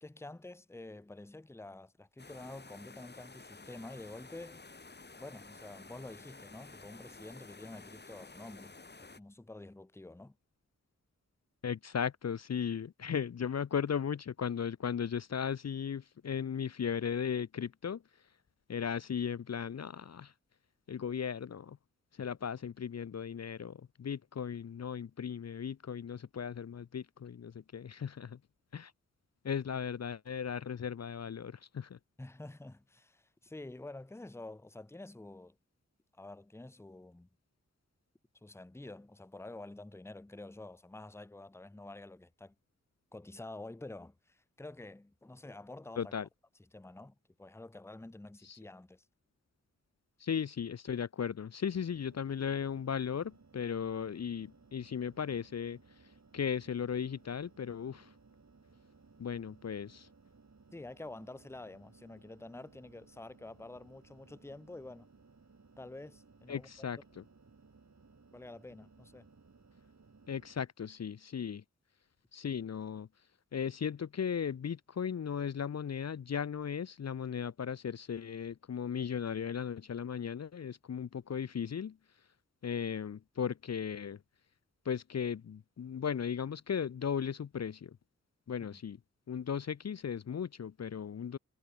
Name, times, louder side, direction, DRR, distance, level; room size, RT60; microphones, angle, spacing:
voice 1, 0.0-4.6 5.2-10.4 32.2-35.6 36.1-37.3 38.4-42.5 43.1-46.1 46.7-49.0 60.7-65.1 65.8-66.9 68.3-69.3 88.7-88.8, left 2 dB, 10° left, 0.7 m, -48 dB
sound 1, 2.2-9.2, left 3 dB, 35° left, 1.3 m, -52 dB
voice 2, 11.6-18.0 18.7-20.3 20.9-21.8 22.1-28.4 28.7-28.9 29.4-32.0 46.0-46.3 48.4-48.6 50.2-55.8 56.3-58.1 59.2-60.1 66.5-67.2 70.3-71.6 72.3-73.1 73.5-82.0 82.6-84.2 84.9-88.0 88.5-89.0 89.3-91.4, left 7 dB, 55° left, 0.6 m, -36 dB
sound 2, 51.7-70.6, right 4 dB, 60° right, 3.7 m, -62 dB
cardioid pair, 45°, 31 cm